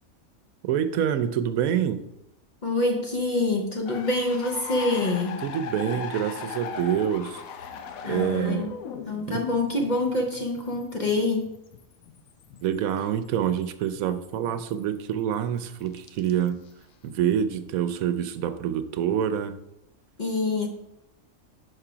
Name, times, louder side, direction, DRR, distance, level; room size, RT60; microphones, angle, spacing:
voice 1, 0.6-2.0 5.4-7.4 8.1-8.7 9.3-9.4 12.6-16.6 17.0-19.5, right 9 dB, 90° right, 12 dB, 1.0 m, -26 dB
voice 2, 2.6-5.4 8.0-8.7 9.1-11.6 20.2-20.7, left 2 dB, 45° left, 2 dB, 0.7 m, -26 dB
sound 1, 3.9-15.0 15.3-16.7, left 6 dB, 85° left, 1.1 m, -39 dB
5.7 x 4.9 x 4.9 m, 0.85 s
omnidirectional pair, 1.4 m